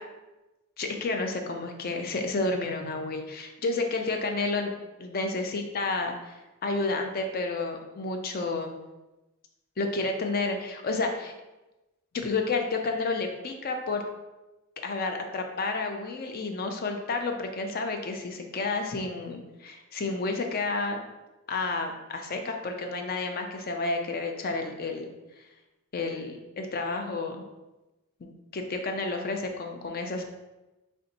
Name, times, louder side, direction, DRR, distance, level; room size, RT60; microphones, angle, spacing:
voice 1, 0.8-4.7 5.0-8.8 9.8-11.3 12.1-14.0 14.8-21.0 21.5-25.1 25.9-27.4 28.2-30.3, left 3 dB, 45° left, 4 dB, 0.4 m, -31 dB
3.3 x 2.7 x 4.0 m, 1.0 s
head